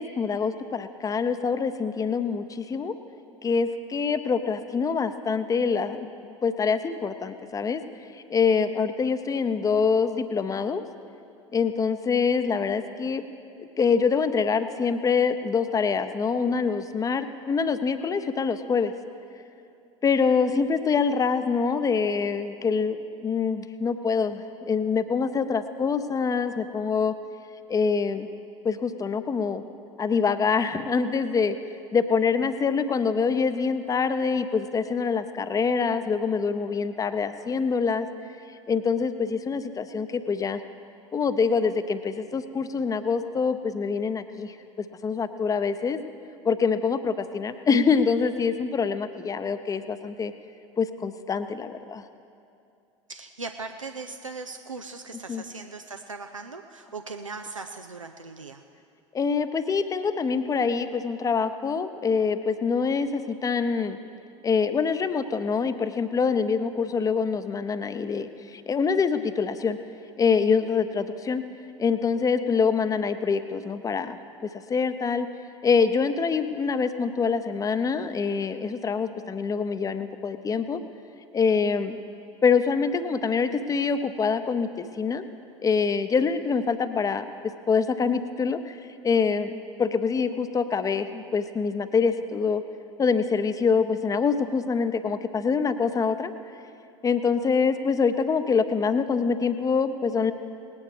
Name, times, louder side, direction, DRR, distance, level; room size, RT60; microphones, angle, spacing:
voice 1, 0.0-2.9 3.4-7.8 8.1-10.8 11.5-13.2 13.6-18.9 20.0-27.1 27.7-28.3 28.6-29.6 30.0-31.6 31.9-38.1 38.7-40.6 41.1-46.0 46.4-50.3 50.8-52.0 55.3-55.4 59.1-64.0 64.4-69.8 70.2-71.4 71.8-74.2 74.5-75.3 75.6-80.8 81.3-82.0 82.4-85.2 85.6-87.2 87.7-88.8 89.0-92.6 93.0-96.3 97.0-100.3, left 5 dB, 20° left, 11 dB, 0.7 m, -25 dB
voice 2, 53.1-58.6, right 4 dB, 85° right, 6 dB, 0.5 m, -39 dB
19.0 x 9.5 x 4.9 m, 2.6 s
figure-of-eight pair, 70°, 16 cm